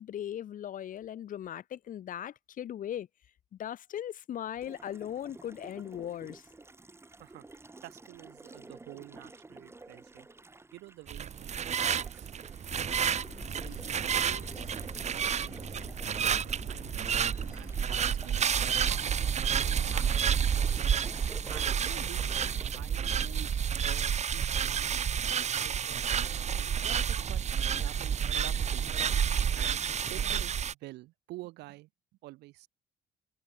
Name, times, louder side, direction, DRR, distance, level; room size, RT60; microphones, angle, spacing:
voice 1, 0.0-3.1 3.5-6.5, left 10 dB, 50° left, 1.4 m, -38 dB
Water tap faucet, 4.6-23.8, right 2 dB, 15° right, 6.4 m, -51 dB
voice 2, 7.8-10.3 10.7-11.5 11.8-12.3 12.8-18.4 18.8-19.1 19.3-20.9 21.5-25.1 25.5-26.5 26.8-27.4 27.7-29.2 29.5-31.9 32.2-32.7, right 19 dB, 85° right, 3.9 m, -49 dB
sound 1, 11.1-30.7, right 8 dB, 40° right, 2.4 m, -30 dB
sound 2, 12.7-23.6, left 3 dB, 20° left, 1.9 m, -47 dB
cardioid pair, 110°, 17 cm